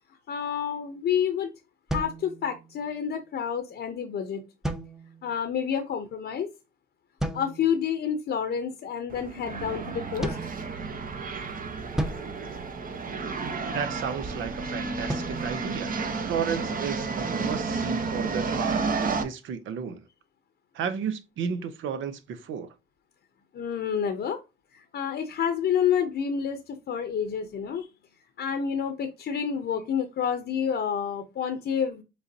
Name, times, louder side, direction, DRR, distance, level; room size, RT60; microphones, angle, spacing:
voice 1, 0.3-1.5 1.9-4.4 5.2-6.5 7.3-10.4 23.5-24.4 24.9-27.9 28.4-32.0, left 8 dB, 60° left, 0.8 m, -29 dB
sound 1, 1.9-3.0 4.6-5.4 7.2-7.9 10.2-11.3 12.0-13.4 15.1-16.6, right 1 dB, ahead, 0.7 m, -36 dB
sound 2, 9.1-19.2, right 4 dB, 45° right, 0.9 m, -31 dB
voice 2, 13.7-20.0 20.7-22.7, right 7 dB, 75° right, 0.8 m, -33 dB
5.3 x 3.3 x 2.7 m
cardioid pair, 90°, 20 cm